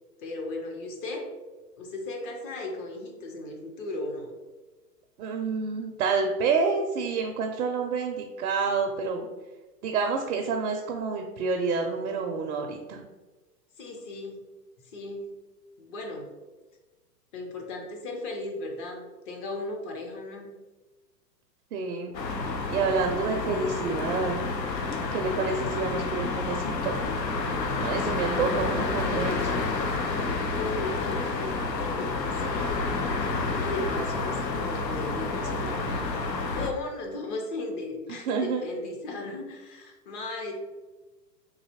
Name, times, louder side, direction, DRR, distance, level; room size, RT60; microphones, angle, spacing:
voice 1, 0.2-1.3 1.8-4.3 13.8-14.4 14.8-15.3 15.8-16.3 17.3-20.5 30.5-32.9 33.2-33.3 33.5-40.5, left 2 dB, 30° left, 1 dB, 0.6 m, -36 dB
voice 2, 5.2-9.3 9.8-13.0 21.7-22.2 22.4-24.5 25.1-27.1 27.8-29.6 38.3-38.6, right 4 dB, 60° right, 3 dB, 0.6 m, -28 dB
sound 1, 22.1-36.7, left 3 dB, 80° left, 0.7 m, -29 dB
3.9 x 2.6 x 2.8 m, 1.2 s
figure-of-eight pair, 110°, 50 cm